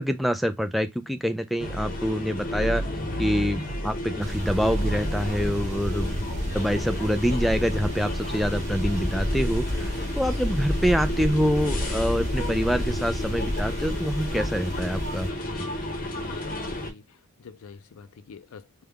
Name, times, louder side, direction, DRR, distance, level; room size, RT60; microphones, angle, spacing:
voice 1, 0.0-2.8 3.2-6.1 6.5-15.7, equal, ahead, 0.3 m, -26 dB
sound 1, 1.6-16.9, left 1 dB, 40° left, 0.8 m, -32 dB
sound 2, 4.2-15.3, equal, 30° right, 0.8 m, -30 dB
voice 2, 16.1-17.0 17.4-18.9, left 5 dB, 70° left, 0.4 m, -47 dB
3.4 x 2.1 x 3.4 m
head